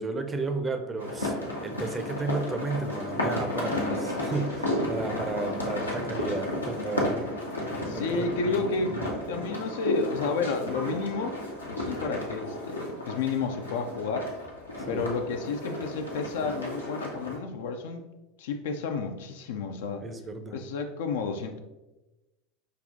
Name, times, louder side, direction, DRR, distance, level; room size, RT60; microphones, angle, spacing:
voice 1, 0.0-7.2 7.9-8.6 14.9-15.0 20.0-20.6, right 3 dB, 15° right, 6 dB, 0.5 m, -33 dB
sound 1, 1.0-17.4, left 1 dB, 85° left, 0.7 m, -33 dB
voice 2, 7.8-9.0 9.3-11.4 11.7-14.3 14.9-18.0 18.4-20.1 20.5-21.6, left 4 dB, 65° left, 6 dB, 0.3 m, -31 dB
5.2 x 2.3 x 2.6 m, 1.0 s
figure-of-eight pair, 80°, 0 cm